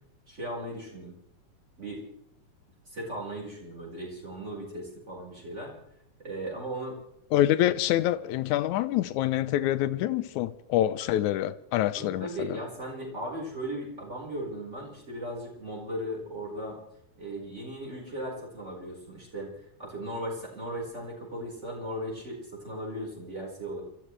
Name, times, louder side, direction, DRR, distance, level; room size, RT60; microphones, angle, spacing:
voice 1, 0.3-1.2 1.8-2.0 2.9-5.7 6.2-7.0 12.0-16.8 17.2-19.5 19.8-23.8, right 1 dB, 20° right, 5.2 m, -37 dB
voice 2, 7.3-12.6, left 13 dB, 75° left, 2.1 m, -26 dB
28.5 x 14.0 x 3.3 m
omnidirectional pair, 3.6 m